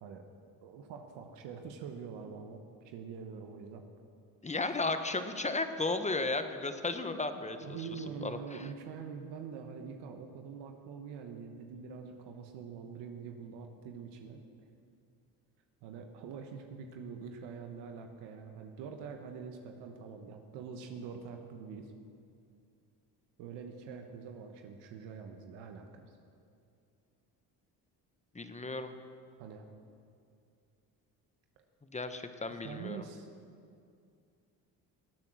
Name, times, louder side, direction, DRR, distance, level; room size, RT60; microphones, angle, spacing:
voice 1, 0.6-3.8 7.6-14.4 15.8-21.9 23.4-26.2 29.4-29.7 32.6-33.3, right 6 dB, 80° right, 4 dB, 1.3 m, -45 dB
voice 2, 4.4-8.7 28.3-28.9 31.9-33.0, left 3 dB, 15° left, 8 dB, 1.2 m, -35 dB
19.0 x 8.8 x 6.3 m, 2.4 s
supercardioid pair, 75°, 41 cm